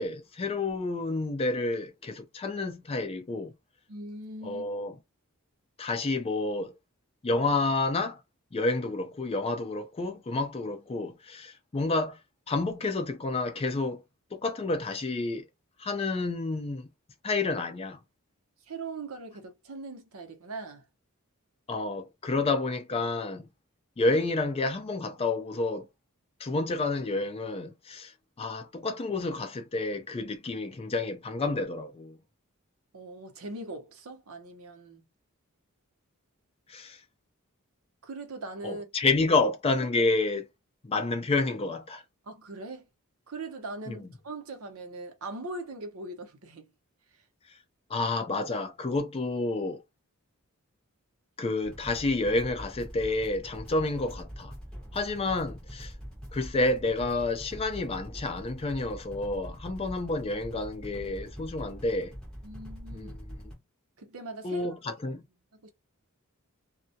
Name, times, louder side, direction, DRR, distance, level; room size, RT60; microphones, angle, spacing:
voice 1, 0.0-3.5 4.4-5.0 5.8-6.7 7.2-8.2 8.5-12.2 12.5-14.0 14.3-15.5 15.8-16.9 17.2-18.0 21.7-23.5 24.0-25.9 26.4-32.2 36.7-37.0 38.6-40.5 40.8-42.0 43.9-44.0 47.9-49.8 51.4-54.5 54.9-55.9 56.3-62.1 62.9-63.1 64.4-65.2, left 3 dB, 25° left, 0.4 m, -29 dB
voice 2, 3.9-4.7 18.7-20.8 32.9-35.0 38.0-38.9 42.3-42.8 43.3-46.7 62.4-63.2 64.0-64.8 65.6-65.7, right 2 dB, 70° right, 0.7 m, -40 dB
sound 1, 51.6-63.6, equal, 5° left, 0.8 m, -44 dB
2.3 x 2.0 x 2.6 m
head